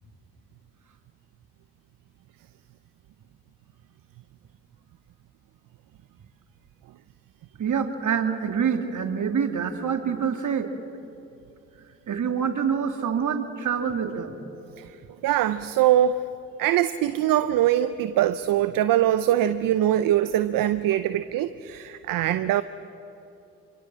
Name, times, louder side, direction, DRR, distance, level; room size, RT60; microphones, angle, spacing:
voice 1, 7.6-10.7 12.1-14.4, right 7 dB, 60° right, 6 dB, 2.3 m, -26 dB
voice 2, 15.2-16.2 16.6-22.6, right 12 dB, 80° right, 12 dB, 0.7 m, -22 dB
27.0 x 24.0 x 7.4 m, 2.9 s
supercardioid pair, 40°, 33 cm